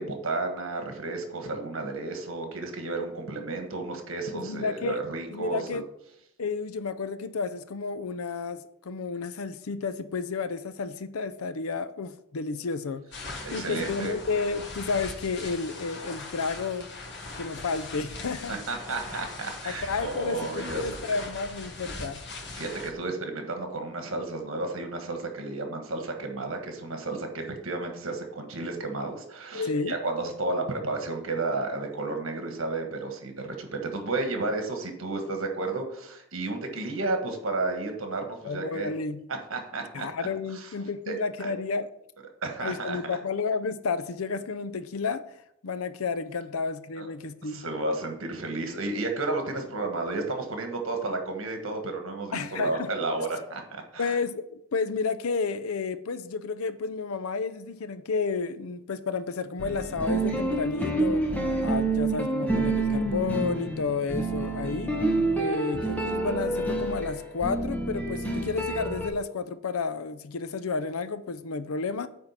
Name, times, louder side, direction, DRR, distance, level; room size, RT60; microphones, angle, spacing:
voice 1, 0.0-5.8 13.4-14.1 18.5-21.1 22.6-38.9 39.5-40.3 40.5-40.7 41.1-41.5 42.4-43.0 47.0-47.1 47.5-54.2, right 2 dB, 70° right, 1.4 m, -32 dB
voice 2, 4.3-5.0 5.3-5.8 6.4-13.0 13.5-16.9 17.4-18.6 19.6-22.2 29.5-30.1 38.4-39.2 39.9-41.9 42.6-45.2 45.6-47.6 52.3-52.9 54.0-61.2 61.6-65.0 65.4-72.1, left 4 dB, 85° left, 0.6 m, -31 dB
sound 1, 13.1-22.9, left 3 dB, 55° left, 1.3 m, -40 dB
sound 2, 59.6-69.1, right 2 dB, 5° left, 1.0 m, -28 dB
8.9 x 3.7 x 5.7 m
head